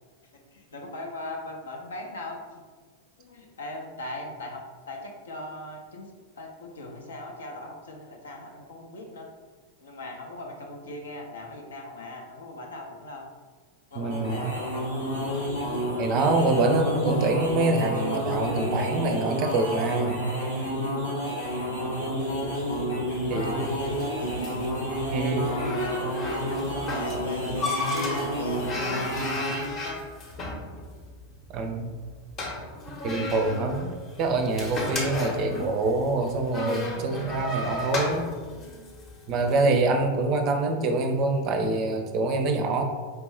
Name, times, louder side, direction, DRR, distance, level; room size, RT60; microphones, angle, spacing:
voice 1, 0.3-2.6 3.2-9.3 9.8-13.3 13.9-14.6 23.3-24.3 25.3-26.1 26.5-30.0 39.4-39.7, left 2 dB, 70° left, 1 dB, 0.6 m, -39 dB
sound 1, 13.9-29.8, equal, 90° left, 1.3 m, -30 dB
voice 2, 14.0-14.5 16.0-20.4 23.3-23.8 25.1-25.5 31.5-31.9 33.0-33.9 34.2-38.3 39.3-42.8, right 2 dB, 35° right, 6 dB, 0.5 m, -25 dB
sound 2, 22.4-39.7, left 1 dB, 30° left, 0.8 m, -35 dB
4.5 x 2.6 x 3.1 m, 1.4 s
figure-of-eight pair, 90°, 0 cm